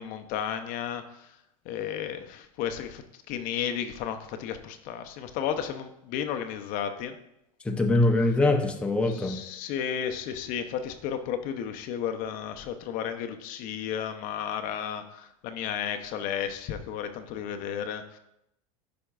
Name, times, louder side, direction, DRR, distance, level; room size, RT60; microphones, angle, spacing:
voice 1, 0.0-1.3 1.7-7.2 9.2-18.2, left 8 dB, 55° left, 7 dB, 0.6 m, -33 dB
voice 2, 7.6-9.4, left 2 dB, 5° left, 3 dB, 0.6 m, -23 dB
10.0 x 4.4 x 2.3 m, 0.81 s
supercardioid pair, 120°, 17 cm